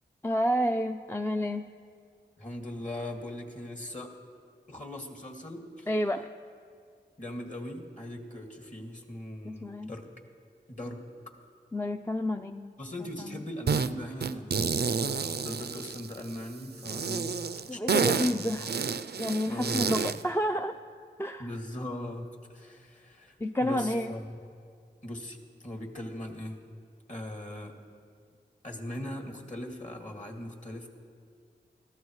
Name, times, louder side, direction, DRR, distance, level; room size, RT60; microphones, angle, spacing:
voice 1, 0.2-1.6 5.9-6.3 9.4-9.9 11.7-12.7 13.3-13.4 17.7-18.7 19.2-20.8 21.2-21.5 23.4-24.1, equal, 15° left, 6 dB, 0.5 m, -29 dB
voice 2, 2.4-4.1 4.7-5.9 7.2-10.1 10.7-11.0 12.8-17.3 17.7-17.8 18.1-18.7 19.4-20.2 21.4-23.4 23.6-24.4 25.0-25.4 25.6-26.6 27.1-27.8 28.6-30.9, left 1 dB, 40° left, 1 dB, 2.3 m, -40 dB
sound 1, 13.7-13.9 14.2-16.3 16.8-20.2, right 5 dB, 60° right, 0.5 m, -29 dB
21.5 x 14.5 x 3.2 m, 2.2 s
cardioid pair, 40°, 19 cm